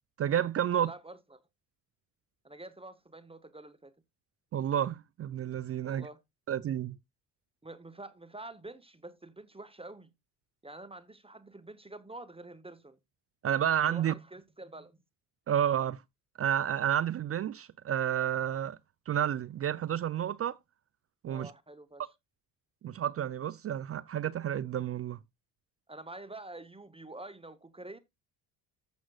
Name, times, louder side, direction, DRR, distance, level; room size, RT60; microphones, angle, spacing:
voice 1, 0.2-0.9 4.5-6.1 6.5-7.0 13.4-14.1 15.5-16.0 16.4-18.8 19.1-20.6 21.2-21.5 22.8-25.2, right 10 dB, 35° right, 0.4 m, -30 dB
voice 2, 0.7-1.4 2.4-3.9 5.8-6.2 7.6-10.1 10.6-13.0 13.9-15.0 21.3-22.1 25.9-28.0, right 2 dB, 15° right, 0.9 m, -47 dB
14.5 x 6.2 x 2.3 m
supercardioid pair, 65°, 44 cm